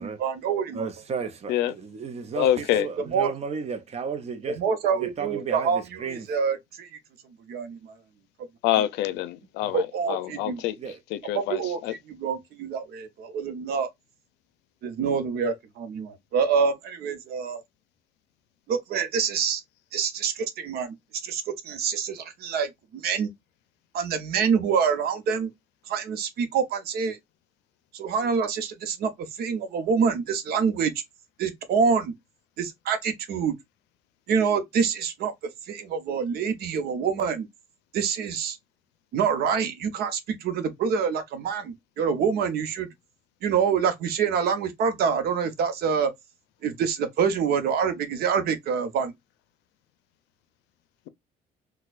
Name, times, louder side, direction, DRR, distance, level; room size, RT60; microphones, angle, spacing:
voice 1, 0.2-0.8 3.0-3.3 4.5-5.8 6.3-6.9 7.5-7.8 9.7-10.6 11.3-13.9 14.8-17.6 18.7-19.6 19.9-20.9 21.2-23.3 23.9-25.5 25.9-27.2 27.9-29.1 29.4-30.9 31.4-32.1 32.6-33.5 34.3-35.3 35.7-37.5 37.9-38.6 39.1-42.9 43.4-46.1 46.6-49.1, right 6 dB, 70° right, 0.8 m, -26 dB
voice 2, 0.7-4.6 4.9-6.4 9.6-9.7 10.7-11.0, right 6 dB, 40° right, 0.7 m, -34 dB
voice 3, 2.4-2.9 8.6-10.7 11.1-11.9, left 12 dB, 90° left, 0.5 m, -26 dB
4.2 x 2.3 x 2.4 m
cardioid pair, 110°, 17 cm